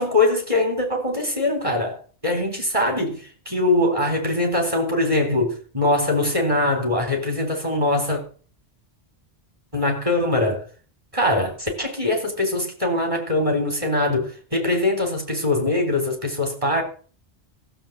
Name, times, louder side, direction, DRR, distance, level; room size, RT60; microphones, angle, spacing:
voice 1, 0.0-8.2 9.7-10.6 11.1-16.8, left 2 dB, 30° right, 4.1 m, -22 dB
14.5 x 7.6 x 7.5 m
omnidirectional pair, 1.1 m